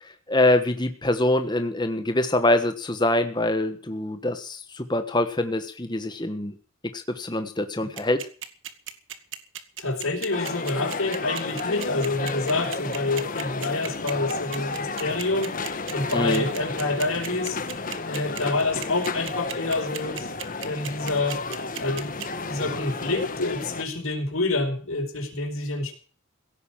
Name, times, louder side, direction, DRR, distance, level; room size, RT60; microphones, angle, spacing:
voice 1, 0.0-6.5 6.9-8.2 16.1-16.4, left 1 dB, 20° left, 8 dB, 1.3 m, -24 dB
sound 1, 8.0-22.4, right 10 dB, 65° right, 1.8 m, -35 dB
voice 2, 9.8-15.5 15.9-17.6 18.1-20.3 20.6-21.4 21.8-25.9, left 2 dB, 90° left, 4 dB, 4.7 m, -27 dB
sound 2, 10.3-23.8, left 3 dB, 40° left, 1.3 m, -32 dB
17.0 x 9.3 x 7.4 m, 0.41 s
head